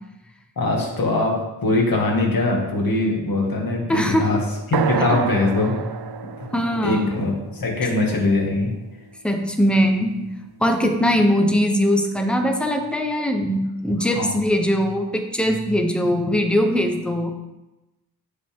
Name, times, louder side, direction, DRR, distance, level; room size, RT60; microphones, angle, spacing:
voice 1, 0.6-4.4 4.7-5.7 6.4-6.5 6.8-8.7 14.1-14.3 16.0-16.2, left 2 dB, 60° left, -1 dB, 2.2 m, -22 dB
voice 2, 3.9-4.4 5.1-5.2 6.5-7.1 9.2-10.2 10.6-17.3, equal, 5° left, 4 dB, 0.8 m, -21 dB
sound 1, 4.7-8.6, right 7 dB, 70° right, 0.6 m, -29 dB
15.0 x 5.4 x 3.6 m, 1.0 s
wide cardioid pair, 175°, 39 cm